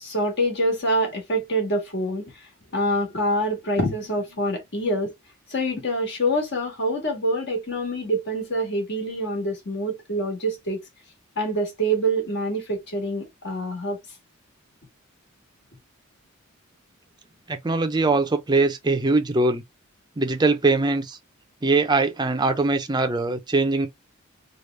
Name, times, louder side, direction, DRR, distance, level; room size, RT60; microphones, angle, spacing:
voice 1, 0.0-5.1 5.5-10.8 11.3-14.0, right 1 dB, 55° left, 1.5 m, -26 dB
voice 2, 17.5-19.6 20.2-21.2 21.6-23.9, right 3 dB, 20° right, 0.5 m, -22 dB
3.3 x 2.4 x 3.1 m
head